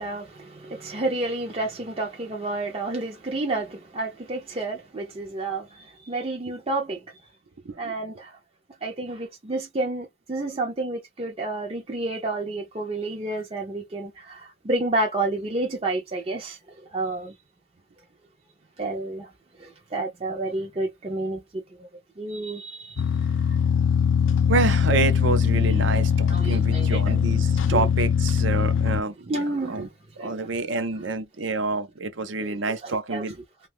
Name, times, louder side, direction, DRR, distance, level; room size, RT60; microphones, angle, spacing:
voice 1, 0.0-7.0 7.8-8.4 8.8-17.3 18.8-19.3 19.6-21.6 22.2-23.0 23.5-23.6 26.3-27.2 27.7-27.8 29.2-29.8 30.2-30.5 32.4-33.2, right 2 dB, 30° right, 0.5 m, -30 dB
sound 1, 23.0-29.0, left 7 dB, 70° left, 0.4 m, -21 dB
voice 2, 24.5-29.9 30.2-33.4, right 3 dB, 70° right, 0.6 m, -28 dB
2.7 x 2.3 x 3.2 m
head